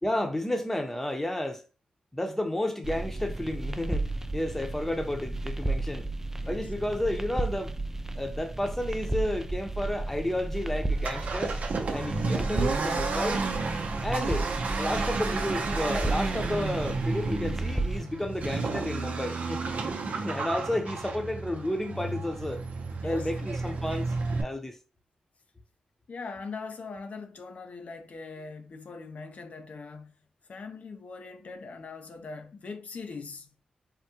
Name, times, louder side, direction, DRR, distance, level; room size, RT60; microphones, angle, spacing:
voice 1, 0.0-1.6 2.1-6.1 6.5-7.7 8.1-11.6 11.9-13.4 14.0-19.6 20.2-22.6 23.0-24.1 24.4-24.8, left 1 dB, 10° left, 0.8 m, -31 dB
sound 1, 2.8-18.0, right 2 dB, 15° right, 0.4 m, -33 dB
Accelerating revving vroom, 10.9-24.4, right 3 dB, 65° right, 0.7 m, -32 dB
voice 2, 23.0-23.5 26.1-30.1 30.5-33.5, left 4 dB, 60° left, 0.6 m, -41 dB
3.6 x 2.2 x 2.8 m
supercardioid pair, 45°, 3 cm